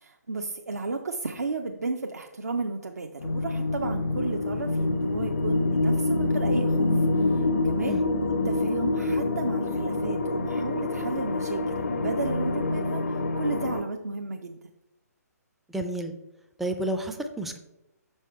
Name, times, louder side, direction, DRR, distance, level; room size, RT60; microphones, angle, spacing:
voice 1, 0.0-6.9 7.2-14.6, right 3 dB, 65° right, 3 dB, 0.6 m, -33 dB
sound 1, 3.2-13.8, left 2 dB, 50° left, 0.5 m, -26 dB
voice 2, 15.7-16.1 16.6-17.6, right 1 dB, ahead, 5 dB, 0.4 m, -31 dB
6.0 x 5.6 x 4.5 m, 0.91 s
figure-of-eight pair, 135°, 9 cm